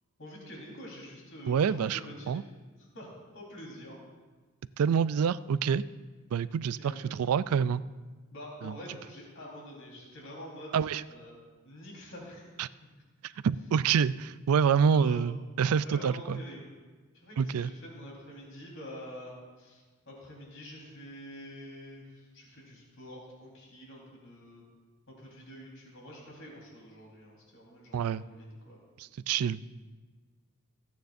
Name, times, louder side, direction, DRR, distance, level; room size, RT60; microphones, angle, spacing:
voice 1, 0.2-2.5 2.8-4.0 6.8-7.1 8.3-10.8 11.1-11.4 11.6-12.5 14.8-15.3 15.8-16.7 17.1-24.6 25.1-28.8, equal, 60° left, -3 dB, 4.1 m, -47 dB
voice 2, 1.5-2.0 2.3-2.4 4.8-5.8 6.3-7.8 8.6-8.7 10.7-11.0 12.6-12.7 13.2-16.4 17.4-17.7 27.9-28.2 29.0-29.6, right 7 dB, 80° right, 16 dB, 0.4 m, -27 dB
27.0 x 9.4 x 2.6 m, 1.3 s
head